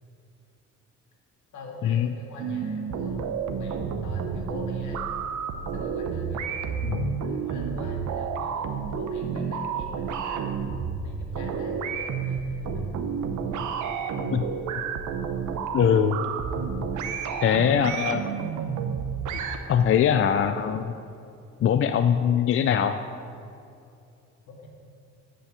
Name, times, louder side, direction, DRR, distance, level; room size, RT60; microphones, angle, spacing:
voice 1, 1.5-5.0 5.7-6.8 7.2-10.6 11.0-12.9 24.5-24.7, left 2 dB, 75° left, 0 dB, 2.1 m, -45 dB
sound 1, 2.4-19.6, right 6 dB, 75° right, 0.9 m, -30 dB
voice 2, 15.7-16.2 17.4-18.2 19.7-20.9 21.6-23.0, left 8 dB, 45° left, 9 dB, 0.4 m, -22 dB
10.0 x 5.5 x 7.5 m, 2.6 s
cardioid pair, 90°, 30 cm